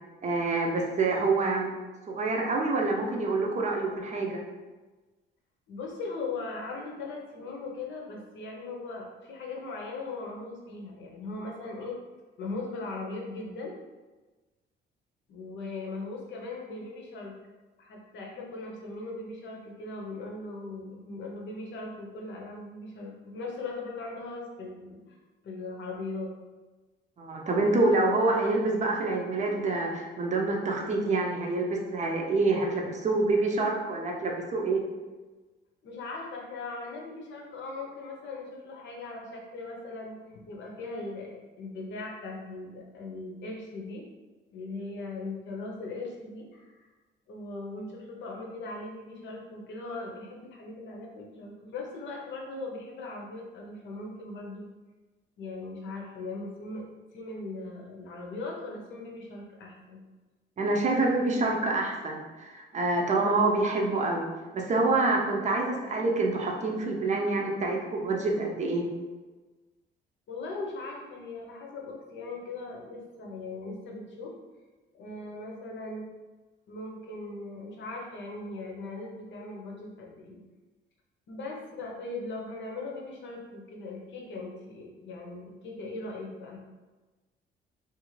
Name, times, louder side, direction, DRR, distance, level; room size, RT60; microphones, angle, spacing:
voice 1, 0.2-1.7 2.1-4.4 27.2-34.8 60.6-64.3 64.5-68.9, right 3 dB, 35° right, 0 dB, 0.6 m, -27 dB
voice 2, 5.7-12.0 12.4-13.7 15.3-17.3 17.8-25.2 25.4-26.3 35.8-44.1 44.5-46.9 47.3-54.7 55.4-56.8 57.1-60.0 70.3-74.3 74.9-76.1 76.7-80.4 81.3-86.6, left 3 dB, 65° left, -1 dB, 0.7 m, -39 dB
2.5 x 2.5 x 3.1 m, 1.2 s
cardioid pair, 90°, 20 cm